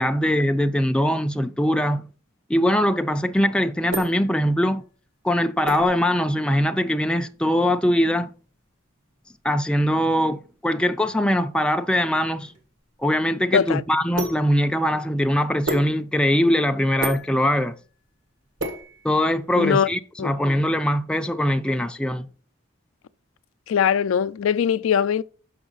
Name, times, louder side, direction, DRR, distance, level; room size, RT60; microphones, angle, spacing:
voice 1, 0.0-2.1 2.5-4.8 5.2-8.3 9.4-12.5 13.0-17.7 19.0-22.3, equal, 5° left, 0.3 m, -22 dB
sound 1, 3.3-19.7, right 2 dB, 65° right, 1.5 m, -36 dB
voice 2, 19.6-19.9 20.2-20.3 23.7-25.2, left 8 dB, 80° left, 0.3 m, -21 dB
6.2 x 5.9 x 3.9 m
head